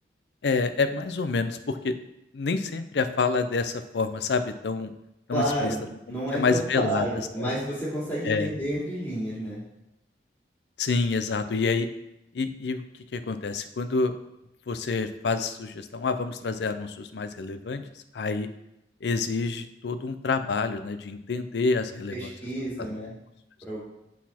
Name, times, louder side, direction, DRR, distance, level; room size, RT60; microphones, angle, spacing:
voice 1, 0.4-2.0 2.3-4.9 5.3-5.7 6.1-7.1 7.4-7.5 8.2-8.5 10.8-11.9 12.3-12.8 13.1-14.1 14.7-17.8 18.1-18.5 19.0-22.3 22.8-23.1, left 4 dB, 80° left, 10 dB, 0.5 m, -28 dB
voice 2, 5.3-5.8 6.1-9.6 22.1-23.1 23.6-23.8, right 1 dB, 10° left, -8 dB, 2.5 m, -30 dB
8.2 x 4.1 x 4.3 m, 0.88 s
head